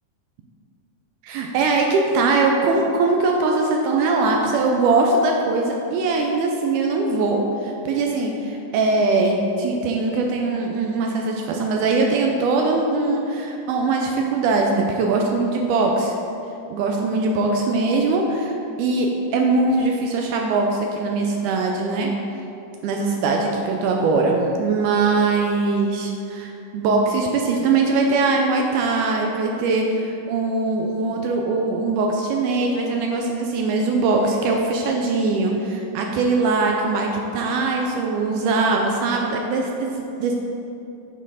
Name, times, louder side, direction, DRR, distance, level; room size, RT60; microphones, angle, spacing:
voice 1, 1.2-16.1 16.7-18.5 18.8-22.1 22.8-39.9 40.2-40.3, right 3 dB, 80° right, 1 dB, 2.0 m, -21 dB
7.1 x 4.3 x 5.5 m, 2.8 s
omnidirectional pair, 3.8 m